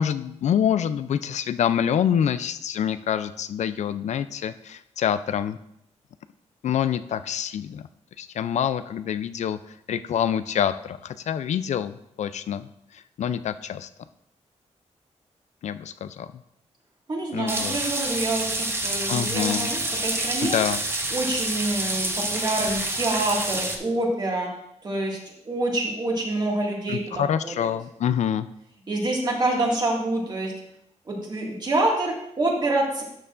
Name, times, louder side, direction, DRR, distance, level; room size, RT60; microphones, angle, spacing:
voice 1, 0.0-5.6 6.6-7.9 8.2-13.9 15.6-16.3 17.3-17.8 19.1-19.7 20.4-20.8 26.9-28.5, left 9 dB, 70° left, 13 dB, 0.4 m, -26 dB
voice 2, 17.1-20.6 21.1-24.5 24.8-25.2 25.5-27.7 28.9-30.5 31.1-33.0, right 2 dB, 35° right, -2 dB, 1.9 m, -26 dB
sound 1, 17.5-23.8, right 2 dB, 20° right, 0.9 m, -28 dB
12.0 x 6.7 x 2.5 m, 0.77 s
wide cardioid pair, 145°, 12 cm